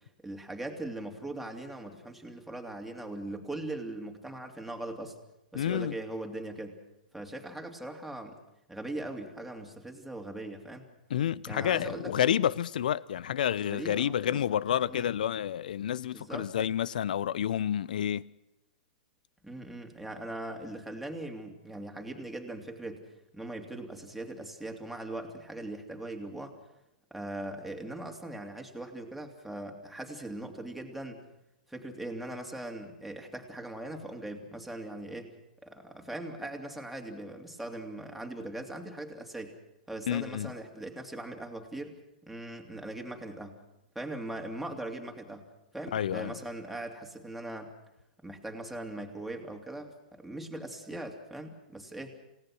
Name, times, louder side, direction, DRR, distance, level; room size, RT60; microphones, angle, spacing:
voice 1, 0.0-5.2 5.5-6.8 7.1-8.4 8.7-10.8 11.5-12.2 13.7-14.4 14.9-15.1 16.1-16.5 19.4-26.5 27.1-31.3 31.7-35.4 35.6-39.5 39.9-41.9 42.2-43.5 43.9-47.7 48.2-52.1, right 1 dB, ahead, 3.0 m, -40 dB
voice 2, 5.5-5.9 11.1-18.2 40.1-40.5 45.9-46.3, left 10 dB, 65° left, 0.7 m, -29 dB
29.0 x 17.5 x 6.3 m
hypercardioid pair, 120°, 5 cm